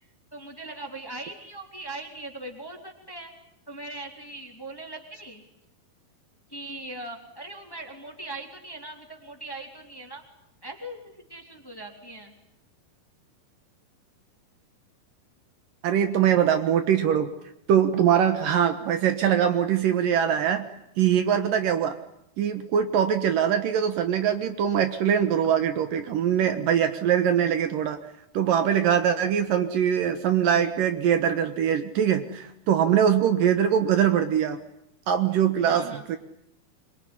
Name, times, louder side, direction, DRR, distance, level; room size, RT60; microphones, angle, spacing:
voice 1, 0.3-3.3 3.7-5.4 6.5-10.2 10.6-12.3 35.6-36.1, right 2 dB, 5° left, 3 dB, 3.0 m, -40 dB
voice 2, 15.8-17.3 17.7-20.7 21.0-22.0 22.4-28.0 28.3-34.6 35.1-36.2, right 9 dB, 65° right, 8 dB, 2.8 m, -22 dB
26.0 x 23.0 x 10.0 m, 0.79 s
omnidirectional pair, 4.4 m